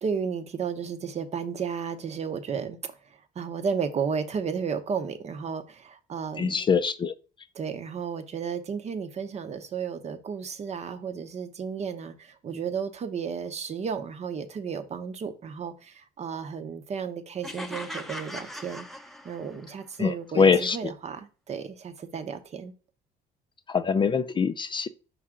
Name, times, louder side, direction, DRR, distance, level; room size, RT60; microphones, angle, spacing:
voice 1, 0.0-6.6 7.5-18.9 19.2-22.7, right 6 dB, 40° right, 0.8 m, -33 dB
voice 2, 6.4-7.1 20.0-20.9 23.7-24.9, left 6 dB, 30° left, 0.4 m, -23 dB
sound 1, 17.4-19.7, left 1 dB, ahead, 0.8 m, -39 dB
5.4 x 4.8 x 3.7 m
cardioid pair, 110°, 17 cm